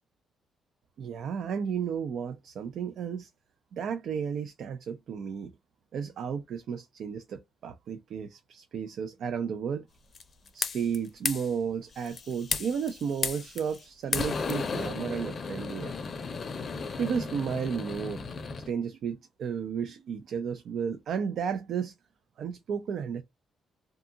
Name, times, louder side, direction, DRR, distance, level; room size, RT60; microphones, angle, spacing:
voice 1, 1.0-3.3 3.7-5.5 5.9-9.9 10.5-15.9 17.0-18.2 18.6-21.9 22.4-23.2, right 7 dB, 70° right, 0.4 m, -33 dB
sound 1, 10.1-11.0 11.2-11.5 12.0-13.8 14.1-18.7, left 5 dB, 45° left, 0.5 m, -34 dB
2.7 x 2.3 x 2.6 m
cardioid pair, 90°, 0 cm